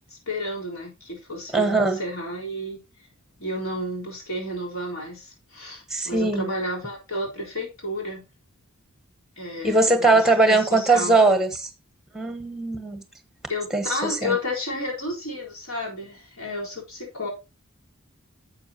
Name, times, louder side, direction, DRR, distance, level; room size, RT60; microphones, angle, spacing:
voice 1, 0.1-2.8 3.4-8.2 9.4-11.2 13.5-17.3, left 1 dB, 80° left, 4.1 m, -31 dB
voice 2, 1.5-2.0 5.9-6.5 9.6-11.7 12.1-13.0 13.7-14.3, right 3 dB, ahead, 1.4 m, -20 dB
11.0 x 7.5 x 2.9 m
head